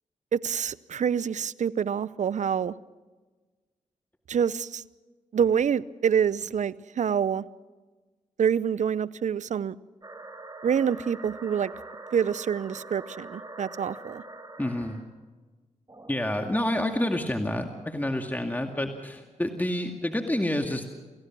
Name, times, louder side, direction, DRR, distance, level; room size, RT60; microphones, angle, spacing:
voice 1, 0.3-2.7 4.3-4.8 5.3-7.4 8.4-9.8 10.6-11.7 12.1-14.2, right 7 dB, 65° right, 19 dB, 0.7 m, -26 dB
sound 1, 10.0-15.1 15.9-18.3, right 2 dB, 25° right, 4.5 m, -45 dB
voice 2, 14.6-15.0 16.1-20.9, left 1 dB, 15° left, 4 dB, 2.2 m, -28 dB
28.5 x 16.0 x 6.1 m, 1.3 s
supercardioid pair, 50°, 13 cm